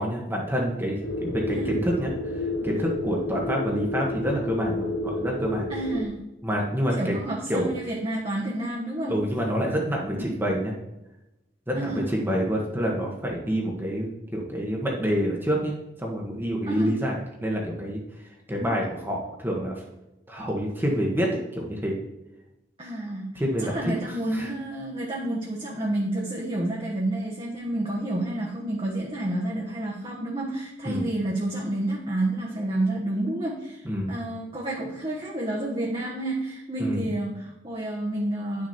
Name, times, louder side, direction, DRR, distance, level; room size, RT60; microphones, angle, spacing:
voice 1, 0.0-5.6 6.4-7.2 7.5-7.8 9.1-10.7 11.7-18.0 18.5-19.8 20.3-22.0 23.3-24.5 30.8-31.0 33.8-34.2 36.8-37.1, equal, 10° right, -2 dB, 1.4 m, -27 dB
sound 1, 1.0-6.0, left 1 dB, 70° left, 1.0 m, -30 dB
voice 2, 5.7-6.2 6.9-9.1 10.1-10.3 11.7-12.0 16.7-16.9 22.8-23.3 23.6-38.7, right 1 dB, 30° right, -3 dB, 1.3 m, -29 dB
10.5 x 6.3 x 4.4 m, 0.93 s
head